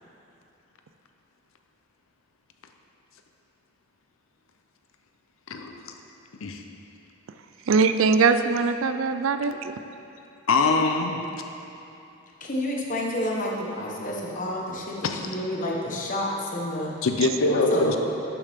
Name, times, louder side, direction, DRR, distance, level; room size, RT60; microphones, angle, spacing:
voice 1, 5.5-5.9 6.4-6.6 10.5-11.2 15.0-15.2 17.0-18.0, left 3 dB, 80° left, 5 dB, 0.7 m, -23 dB
voice 2, 7.7-9.7, right 4 dB, 75° right, 9 dB, 0.4 m, -21 dB
voice 3, 12.4-16.9 17.4-18.0, left 1 dB, 40° left, -2 dB, 1.2 m, -29 dB
11.0 x 6.9 x 3.6 m, 2.9 s
head